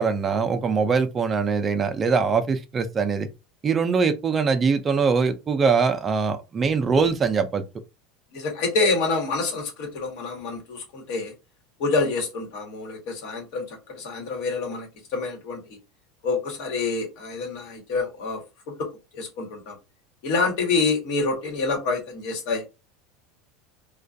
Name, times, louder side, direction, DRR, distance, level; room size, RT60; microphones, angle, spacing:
voice 1, 0.0-3.3 3.6-7.6, right 5 dB, 25° right, 0.4 m, -22 dB
voice 2, 8.3-11.3 11.8-15.6 16.2-18.4 18.7-18.8 19.1-19.8 20.2-22.6, left 3 dB, 65° left, 1.1 m, -27 dB
2.3 x 2.2 x 2.6 m
supercardioid pair, 120°, 0 cm